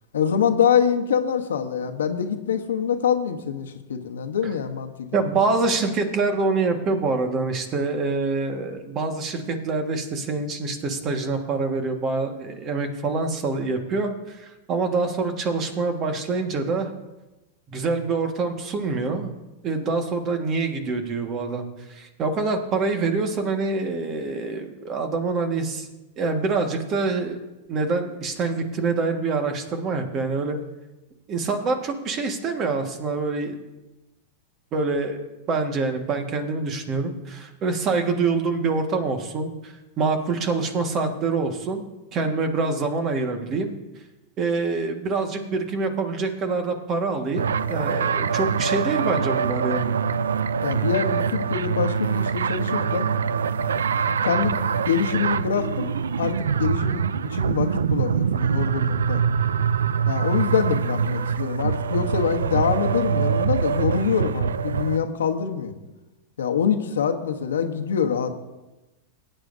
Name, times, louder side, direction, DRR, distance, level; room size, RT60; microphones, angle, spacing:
voice 1, 0.1-5.2 50.6-53.1 54.2-54.6 54.9-55.9 56.2-59.2 60.1-65.7 66.4-68.3, left 7 dB, 85° left, 5 dB, 1.0 m, -25 dB
voice 2, 5.1-16.9 17.7-19.3 19.6-25.9 26.2-27.4 27.7-30.6 31.3-33.6 34.7-35.2 35.5-41.8 42.1-43.8 44.4-50.0, right 3 dB, 40° right, 5 dB, 1.6 m, -25 dB
sound 1, 47.4-65.0, right 6 dB, 90° right, 0.4 m, -24 dB
18.5 x 9.0 x 2.7 m, 1.1 s
hypercardioid pair, 110°, 0 cm